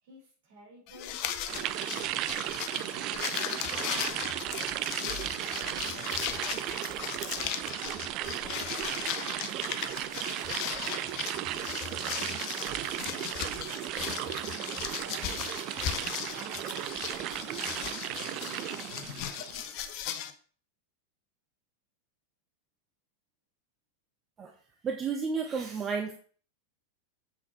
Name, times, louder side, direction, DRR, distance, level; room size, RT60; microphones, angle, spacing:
voice 1, 0.0-2.5 2.8-4.8 5.1-7.2 7.8-11.7 12.0-15.8 16.3-18.9, right 1 dB, 55° right, -2 dB, 4.4 m, -54 dB
sound 1, 0.9-20.3, left 10 dB, 45° left, 0.9 m, -37 dB
sound 2, 1.5-19.8, right 13 dB, 40° right, 0.5 m, -35 dB
voice 2, 24.8-26.1, right 5 dB, 25° right, 4 dB, 1.0 m, -32 dB
7.4 x 6.0 x 4.3 m, 0.43 s
figure-of-eight pair, 90°, 0 cm